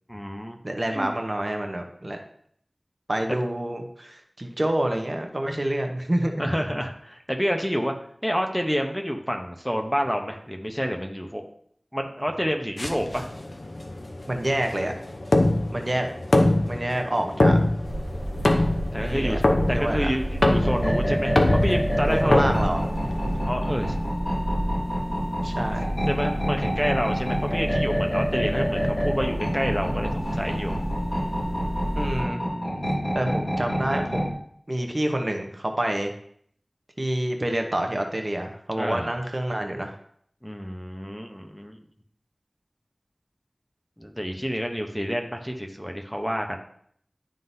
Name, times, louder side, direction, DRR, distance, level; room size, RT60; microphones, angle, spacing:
voice 1, 0.1-0.6 0.9-1.1 3.3-3.4 6.4-7.9 8.2-11.4 11.9-13.3 18.9-19.4 19.7-22.4 23.5-24.0 26.1-30.8 38.8-39.2 40.4-41.8 44.0-46.6, equal, 5° left, 3 dB, 0.8 m, -28 dB
voice 2, 0.6-2.2 3.1-6.5 14.3-14.9 15.7-16.1 16.7-17.6 19.0-19.4 19.7-20.1 22.0-22.8 25.4-25.9 31.9-32.5 33.1-34.3 34.7-36.1 37.0-40.0, right 1 dB, 45° right, 4 dB, 0.9 m, -27 dB
sound 1, 12.8-23.4, left 1 dB, 90° left, 0.7 m, -24 dB
sound 2, 17.8-32.2, equal, 15° right, 1.8 m, -32 dB
sound 3, 20.6-34.3, equal, 50° left, 2.7 m, -28 dB
11.0 x 3.8 x 2.7 m, 0.65 s
wide cardioid pair, 50°, 0 cm